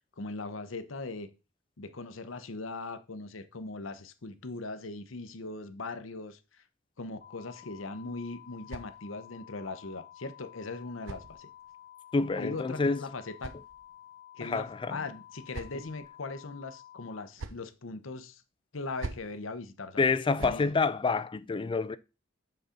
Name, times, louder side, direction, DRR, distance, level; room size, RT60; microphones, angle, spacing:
voice 1, 0.2-1.3 1.8-6.6 7.0-11.5 12.4-13.5 14.4-18.4 18.7-20.0 20.4-20.7, left 3 dB, 85° left, 0.9 m, -40 dB
sound 1, 7.2-17.2, left 12 dB, 45° left, 0.8 m, -52 dB
sound 2, 7.8-9.4 10.4-11.9 12.9-14.2 15.0-16.1 17.0-17.7 18.7-19.4 20.1-20.7, right 3 dB, 80° right, 0.8 m, -46 dB
voice 2, 12.1-13.0 14.4-15.0 20.0-22.0, left 4 dB, 25° left, 0.4 m, -28 dB
7.9 x 4.2 x 5.1 m
head